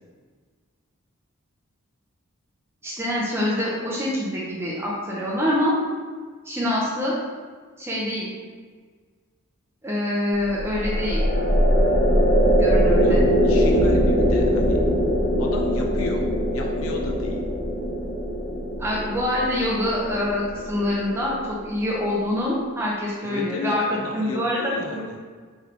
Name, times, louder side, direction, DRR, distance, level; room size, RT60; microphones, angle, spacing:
voice 1, 2.8-5.8 6.4-7.2 7.8-8.3 9.8-11.2 12.5-13.3 18.8-25.0, left 1 dB, 10° right, -5 dB, 0.5 m, -25 dB
sound 1, 10.4-21.8, equal, 50° left, 1.0 m, -22 dB
voice 2, 13.0-14.8 15.4-16.2 16.5-17.4 23.2-25.2, left 3 dB, 80° left, 1 dB, 0.4 m, -33 dB
3.2 x 3.1 x 3.6 m, 1.5 s
head